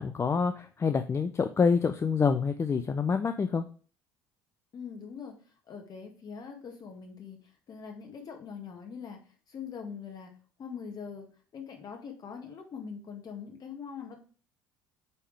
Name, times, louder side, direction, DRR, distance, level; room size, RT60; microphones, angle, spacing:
voice 1, 0.0-3.7, left 5 dB, 30° left, 8 dB, 0.5 m, -27 dB
voice 2, 4.7-5.3 5.7-7.4 7.7-9.2 9.5-10.3 10.6-11.3 11.5-14.2, left 6 dB, 45° left, 3 dB, 1.9 m, -42 dB
8.2 x 3.6 x 3.4 m, 0.40 s
hypercardioid pair, 60°, 9 cm